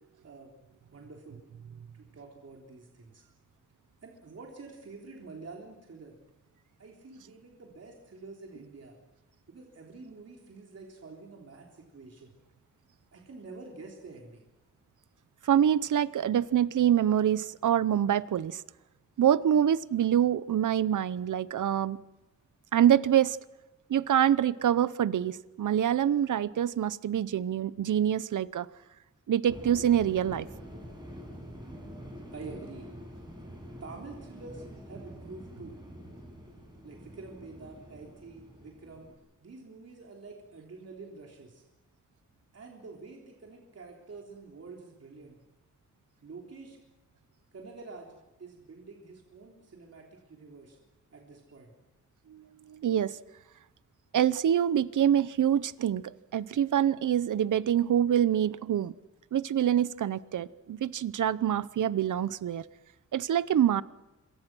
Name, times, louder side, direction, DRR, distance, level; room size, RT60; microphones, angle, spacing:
voice 1, 0.9-1.4 1.9-3.2 4.0-6.2 6.8-8.9 9.5-12.3 13.1-14.5 32.3-32.9 33.8-35.8 36.8-39.1 39.4-41.6 42.5-45.4 46.2-46.8 47.5-50.8 51.1-51.7, right 3 dB, 55° right, 3.7 m, -47 dB
voice 2, 15.4-18.6 19.2-22.0 22.7-23.4 23.9-28.7 29.3-30.5 52.3-53.2 54.1-59.0 59.3-62.7 63.1-63.8, right 10 dB, 90° right, 0.8 m, -26 dB
sound 1, 29.5-39.1, equal, 15° right, 6.6 m, -46 dB
27.0 x 24.0 x 6.2 m
wide cardioid pair, 120°, 30 cm